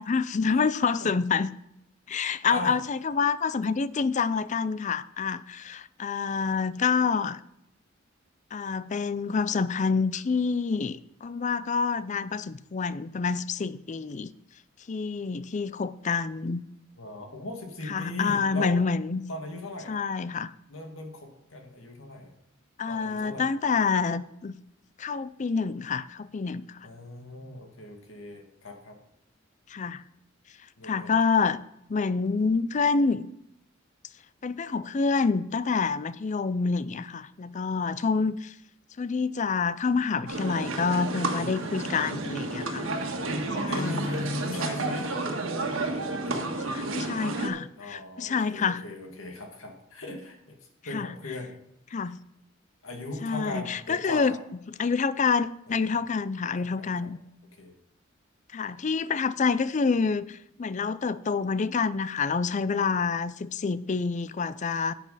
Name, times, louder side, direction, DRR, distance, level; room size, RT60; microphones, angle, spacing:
voice 1, 0.0-1.5 2.1-7.4 8.5-14.3 14.9-16.6 17.9-19.2 19.9-20.5 22.8-24.6 25.0-26.8 29.7-30.0 30.8-31.6 31.9-33.3 34.4-38.5 39.0-42.9 43.6-44.0 46.7-48.8 50.9-51.1 51.9-52.2 53.2-54.4 54.8-57.2 58.5-64.9, left 5 dB, 35° left, 0.4 m, -27 dB
voice 2, 17.0-18.8 19.3-20.0 20.7-22.3 22.9-23.5 26.8-29.0 30.8-31.3 41.3-42.0 43.7-45.1 46.3-46.5 47.8-50.6 50.9-51.5 52.0-52.1 52.8-54.4 55.7-56.1 56.6-57.1 57.6-57.8, left 2 dB, 80° left, 2.2 m, -38 dB
sound 1, 40.3-47.5, right 2 dB, 80° right, 1.6 m, -31 dB
11.0 x 8.5 x 4.0 m
head